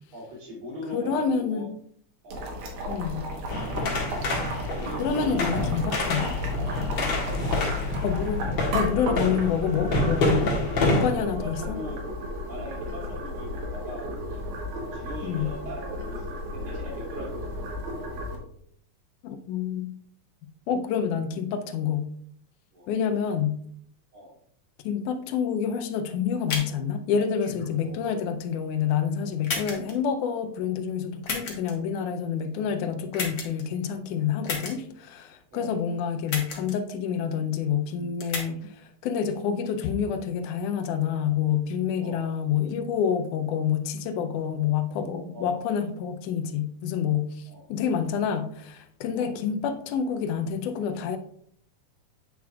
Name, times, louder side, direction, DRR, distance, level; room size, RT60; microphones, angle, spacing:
voice 1, 0.1-1.7 2.2-2.5 4.7-5.9 7.0-7.7 8.4-8.8 11.3-12.0 12.5-14.4 14.8-17.8 22.7-22.9 24.1-24.3 35.5-35.8 42.0-42.3 45.3-45.6 47.5-47.6 49.1-49.3, left 1 dB, 70° right, -5 dB, 4.0 m, -41 dB
voice 2, 0.9-1.7 2.9-3.3 4.2-4.4 5.0-6.4 8.0-10.6 10.9-11.8 15.2-15.5 19.2-20.0 20.7-22.1 22.9-23.6 24.8-51.2, left 7 dB, 85° left, 8 dB, 2.1 m, -28 dB
Boiling, 2.3-18.4, equal, 85° right, 2.6 m, -34 dB
sound 1, 3.5-11.1, left 2 dB, 45° left, 1.7 m, -27 dB
sound 2, 26.5-26.8 27.4-28.1 28.7-28.8 29.4-29.9 31.2-31.7 33.1-33.6 34.4-34.7 36.3-36.7 37.0-37.1 38.2-38.4, left 4 dB, 70° left, 0.8 m, -32 dB
8.4 x 6.0 x 2.3 m, 0.65 s
omnidirectional pair, 3.5 m